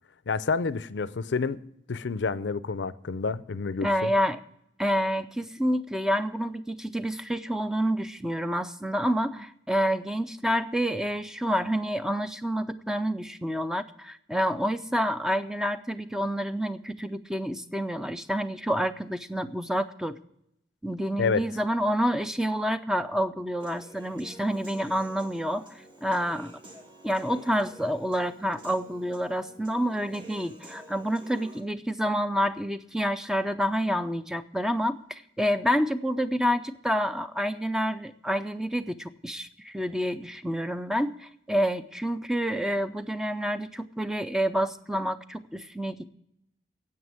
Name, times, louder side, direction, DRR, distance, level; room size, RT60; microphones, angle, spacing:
voice 1, 0.3-1.6 1.9-4.1 21.2-21.4, left 4 dB, 80° left, 0.5 m, -28 dB
voice 2, 3.8-4.4 4.8-20.2 20.8-26.5 27.0-46.1, equal, 5° right, 0.4 m, -28 dB
Human voice / Piano, 23.6-31.6, right 1 dB, 25° right, 1.8 m, -49 dB
9.6 x 8.1 x 9.4 m
head